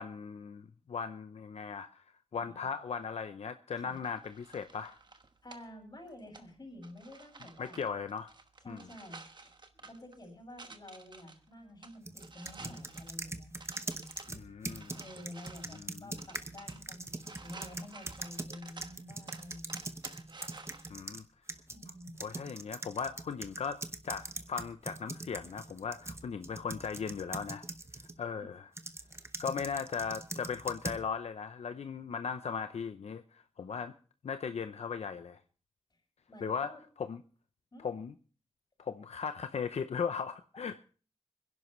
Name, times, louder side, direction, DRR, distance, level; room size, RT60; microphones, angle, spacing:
voice 1, 0.0-2.0 2.3-5.0 7.6-8.3 8.7-8.9 14.3-15.0 15.7-16.2 20.9-21.2 22.2-27.6 28.2-28.7 29.4-33.9 34.2-35.4 36.4-36.7 37.0-37.2 37.8-38.1 38.8-40.8, left 6 dB, 85° left, 9 dB, 0.7 m, -38 dB
sound 1, 3.9-20.9, right 3 dB, 45° right, 1.2 m, -54 dB
voice 2, 5.4-7.8 8.6-13.5 14.9-19.9 21.7-22.1 28.3-28.5 29.1-29.3 36.3-36.8 37.7-37.9, left 1 dB, 40° left, 1 dB, 6.6 m, -50 dB
sound 2, 12.1-21.2 21.5-28.2 28.8-31.0, right 2 dB, 25° right, 0.9 m, -42 dB
26.0 x 11.0 x 3.2 m, 0.39 s
wide cardioid pair, 110°, 11 cm